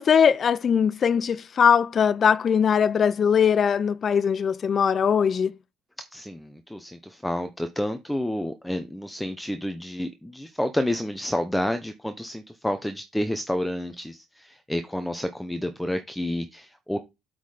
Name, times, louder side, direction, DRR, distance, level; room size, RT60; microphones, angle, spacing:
voice 1, 0.0-5.5, left 7 dB, 40° left, 0.4 m, -21 dB
voice 2, 6.1-17.0, left 1 dB, 5° left, 0.8 m, -29 dB
8.2 x 3.8 x 4.9 m
cardioid pair, 105°, 0 cm